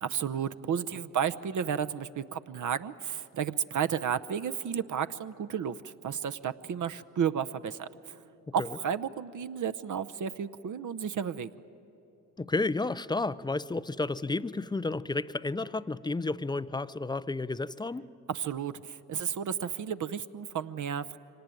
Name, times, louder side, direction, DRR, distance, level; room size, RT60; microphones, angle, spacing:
voice 1, 0.0-8.2 8.5-11.5 18.3-21.2, right 8 dB, 40° right, 12 dB, 0.8 m, -32 dB
voice 2, 12.4-18.1, left 3 dB, 10° left, 16 dB, 0.5 m, -32 dB
24.5 x 18.5 x 9.2 m, 3.0 s
hypercardioid pair, 55°, 45 cm